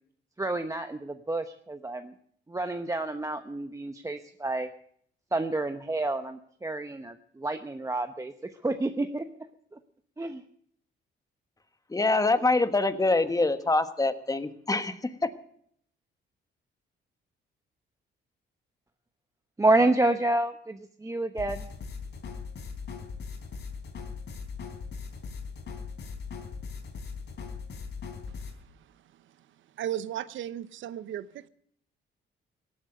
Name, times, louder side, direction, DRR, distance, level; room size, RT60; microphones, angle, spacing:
voice 1, 0.4-2.1 2.5-4.7 5.3-8.3 8.6-9.2 10.2-10.4 19.6-21.7, right 2 dB, 15° right, 0.9 m, -29 dB
voice 2, 11.9-15.3, left 2 dB, 15° left, 1.4 m, -25 dB
sound 1, 21.4-28.5, left 5 dB, 60° left, 3.6 m, -39 dB
voice 3, 28.3-29.4 29.8-31.5, right 11 dB, 75° right, 0.9 m, -37 dB
17.0 x 8.8 x 7.9 m
cardioid pair, 90°, 20 cm